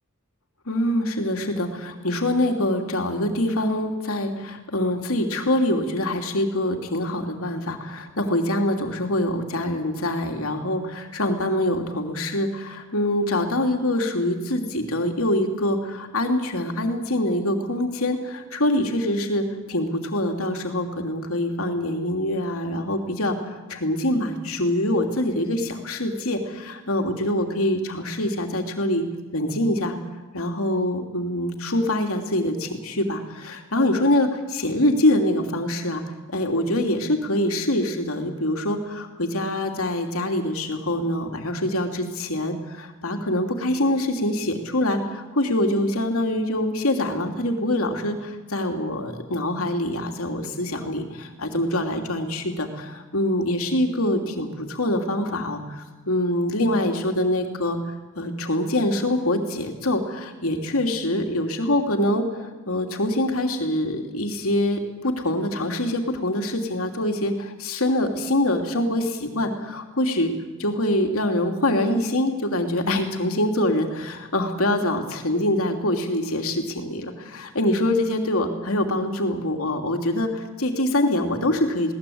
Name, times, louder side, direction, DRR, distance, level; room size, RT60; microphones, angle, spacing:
voice 1, 0.7-29.0 29.3-30.0 30.3-36.0 36.3-70.3 70.6-81.9, left 1 dB, 80° left, 3 dB, 3.0 m, -24 dB
21.0 x 18.0 x 8.7 m, 1.2 s
head